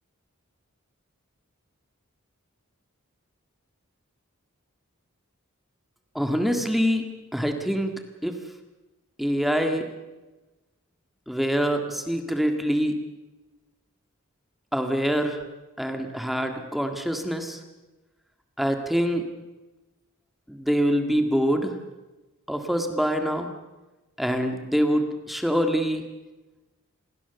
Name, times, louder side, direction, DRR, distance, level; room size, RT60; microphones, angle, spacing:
voice 1, 6.2-7.0 7.3-7.9 8.2-8.3 9.2-9.9 11.3-13.0 14.7-15.4 15.8-17.6 18.6-19.3 20.5-21.7 22.5-23.5 24.2-26.1, equal, ahead, 5 dB, 1.8 m, -25 dB
27.5 x 19.5 x 7.0 m, 1.1 s
head